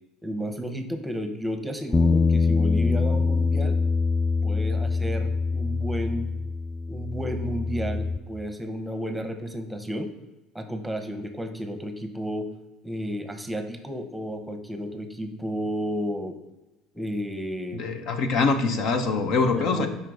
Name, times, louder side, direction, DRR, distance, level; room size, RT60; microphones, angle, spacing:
voice 1, 0.2-3.8 4.4-6.3 6.9-10.1 10.5-12.5 12.8-16.4 16.9-17.8 19.4-19.9, equal, 5° right, 6 dB, 1.0 m, -32 dB
Bass guitar, 1.9-8.2, left 4 dB, 15° left, 0.4 m, -24 dB
voice 2, 17.7-19.9, left 4 dB, 60° left, 7 dB, 0.9 m, -24 dB
5.5 x 4.5 x 3.9 m, 1.0 s
hypercardioid pair, 75°, 0 cm